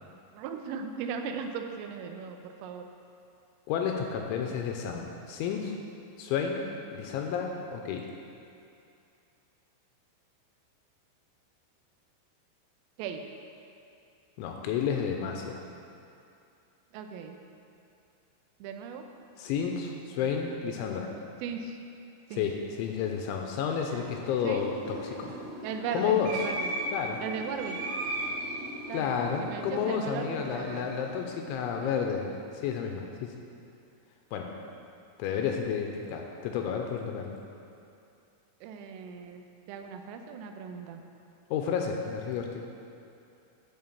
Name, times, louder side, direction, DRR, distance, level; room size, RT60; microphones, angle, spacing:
voice 1, 0.3-2.8 13.0-13.2 16.9-17.4 18.6-19.0 21.4-21.7 22.3-22.5 24.4-24.6 25.6-26.7 27.2-27.8 28.9-29.1 29.4-30.8 31.8-31.9 38.6-41.0, right 6 dB, 85° right, 5 dB, 3.3 m, -37 dB
voice 2, 3.7-5.8 6.2-8.1 14.4-15.6 19.4-21.1 22.3-25.3 25.9-26.4 26.9-27.2 28.9-32.3 32.5-33.3 34.3-34.5 35.2-37.4 41.5-42.6, left 7 dB, 80° left, 2 dB, 2.9 m, -31 dB
sound 1, 23.6-32.1, right 1 dB, 70° right, 3.9 m, -38 dB
11.5 x 5.2 x 7.2 m, 2.6 s
omnidirectional pair, 5.8 m